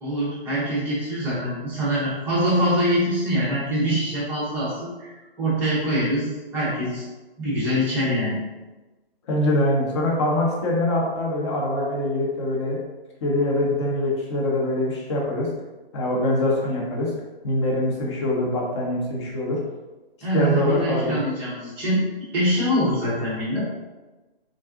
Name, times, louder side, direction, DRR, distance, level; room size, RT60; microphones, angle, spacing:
voice 1, 0.0-5.1 5.4-7.0 7.4-8.4 20.2-22.1 22.3-23.7, equal, 5° right, -10 dB, 0.6 m, -24 dB
voice 2, 9.3-12.8 13.2-15.5 15.9-17.1 17.4-19.6 20.3-21.2, left 1 dB, 30° left, -2 dB, 0.7 m, -23 dB
3.6 x 2.4 x 3.5 m, 1.1 s
hypercardioid pair, 150°, 30 cm